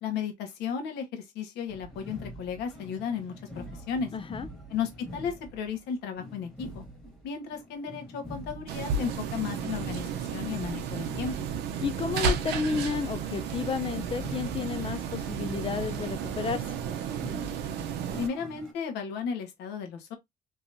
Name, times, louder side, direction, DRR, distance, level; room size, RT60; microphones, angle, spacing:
voice 1, 0.0-4.1 4.7-6.8 7.2-11.5 18.1-20.2, left 6 dB, 90° left, 1.2 m, -34 dB
sound 1, 1.7-18.7, equal, ahead, 1.8 m, -45 dB
voice 2, 4.1-4.5 11.8-16.6, left 6 dB, 30° left, 0.5 m, -31 dB
sound 2, 8.7-18.3, right 6 dB, 80° right, 0.7 m, -33 dB
3.4 x 3.0 x 2.6 m
cardioid pair, 110°, 17 cm